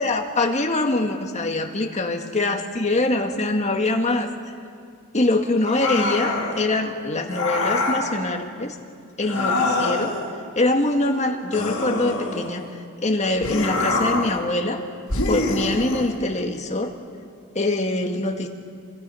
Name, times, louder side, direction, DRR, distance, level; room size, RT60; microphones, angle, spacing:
voice 1, 0.0-4.3 5.1-8.8 9.2-10.1 10.6-12.7 13.0-14.8 15.3-16.9 17.6-18.5, left 2 dB, 30° left, 3 dB, 1.9 m, -23 dB
sound 1, 5.6-6.6 7.3-8.1 9.2-10.2 11.5-12.6 13.4-14.4 15.1-16.1, left 2 dB, 65° left, 5.2 m, -25 dB
28.0 x 25.0 x 5.7 m, 2.2 s
head